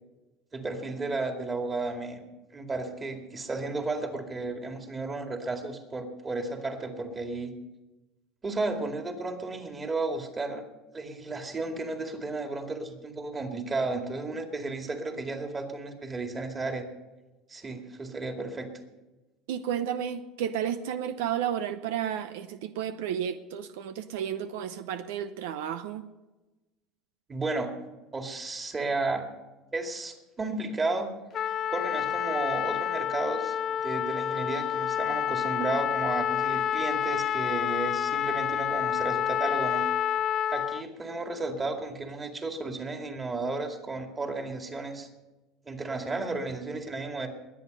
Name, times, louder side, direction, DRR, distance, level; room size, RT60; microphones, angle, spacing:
voice 1, 0.5-2.2 2.5-7.5 8.4-10.6 10.9-16.9 17.5-18.7 27.3-27.7 28.1-29.2 29.7-31.1 31.4-39.9 40.5-45.1 45.7-47.3, right 3 dB, 20° right, 4 dB, 2.3 m, -33 dB
voice 2, 19.5-26.0, right 9 dB, 85° right, 11 dB, 0.7 m, -32 dB
Trumpet, 31.3-40.8, left 10 dB, 40° left, 0.4 m, -28 dB
21.0 x 8.6 x 5.4 m, 1.1 s
supercardioid pair, 115°, 0 cm